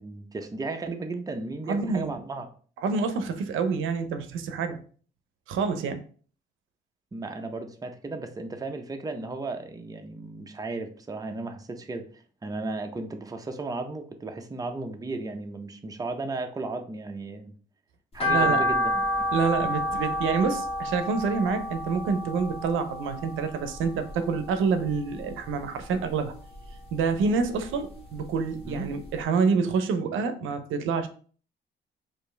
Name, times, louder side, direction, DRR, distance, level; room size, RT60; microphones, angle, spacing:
voice 1, 0.0-2.5 7.1-12.1 12.4-17.5 18.1-19.3 28.6-28.9, right 3 dB, 20° right, 0.6 m, -35 dB
voice 2, 1.7-2.2 2.8-4.8 5.5-6.0 18.3-18.7 19.3-26.3 26.9-31.1, right 5 dB, 85° right, 0.6 m, -27 dB
sound 1, 18.2-24.5 24.9-26.0 26.4-27.8 28.2-28.3 28.7-28.8 29.1-29.2, left 1 dB, 30° left, 1.5 m, -29 dB
4.3 x 2.6 x 3.2 m
cardioid pair, 90°, 20 cm